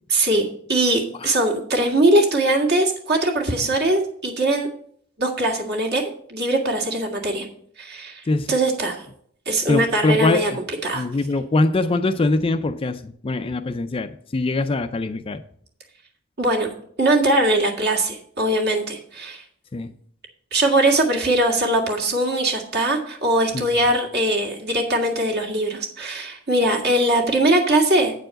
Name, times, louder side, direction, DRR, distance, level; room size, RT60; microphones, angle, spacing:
voice 1, 0.1-0.4 0.7-4.7 5.2-6.0 6.3-7.5 7.8-8.2 8.5-9.0 9.5-10.5 10.8-11.0 16.4-16.7 17.0-19.4 20.5-28.1, right 1 dB, 50° right, 0 dB, 1.9 m, -21 dB
voice 2, 9.7-10.6 10.9-15.4 19.7-19.9 23.5-23.6, left 2 dB, 25° left, 10 dB, 0.4 m, -23 dB
8.8 x 4.6 x 7.5 m, 0.63 s
head